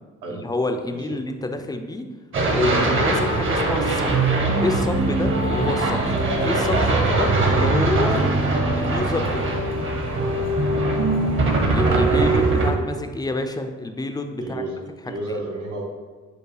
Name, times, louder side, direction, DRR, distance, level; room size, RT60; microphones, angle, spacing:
voice 1, 0.3-2.0 2.5-4.2 4.6-8.3 8.7-9.6 11.7-14.6 15.3-15.4, left 2 dB, 15° left, 6 dB, 0.4 m, -28 dB
voice 2, 0.9-1.2 11.9-12.4 14.4-15.8, right 2 dB, 80° right, -1 dB, 1.1 m, -32 dB
sound 1, 2.3-12.7, right 2 dB, 40° right, 0.9 m, -21 dB
4.7 x 2.3 x 4.7 m, 1.4 s
cardioid pair, 90°, 30 cm